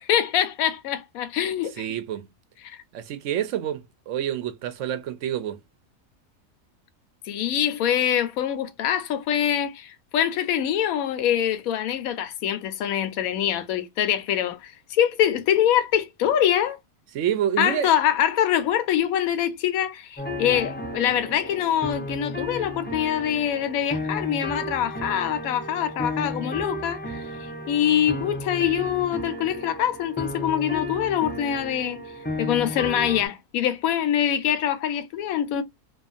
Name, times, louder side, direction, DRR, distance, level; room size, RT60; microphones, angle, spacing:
voice 1, 0.0-1.9 2.6-2.8 7.3-16.8 17.6-32.0 32.4-35.6, left 10 dB, 80° left, 1.0 m, -24 dB
voice 2, 1.8-2.3 2.9-5.6 17.1-17.9, right 10 dB, 70° right, 0.9 m, -28 dB
sound 1, 20.2-33.3, left 1 dB, 10° left, 0.5 m, -33 dB
2.7 x 2.4 x 2.4 m
omnidirectional pair, 1.5 m